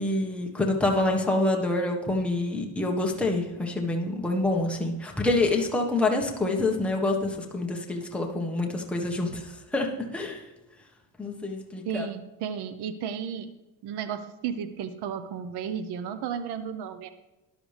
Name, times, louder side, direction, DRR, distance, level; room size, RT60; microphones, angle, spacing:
voice 1, 0.0-10.5 11.2-12.1, left 2 dB, 5° left, 0 dB, 1.5 m, -27 dB
voice 2, 11.8-13.5 13.8-17.1, right 8 dB, 75° right, 11 dB, 1.1 m, -33 dB
14.0 x 10.5 x 3.5 m, 1.0 s
cardioid pair, 125°, 40 cm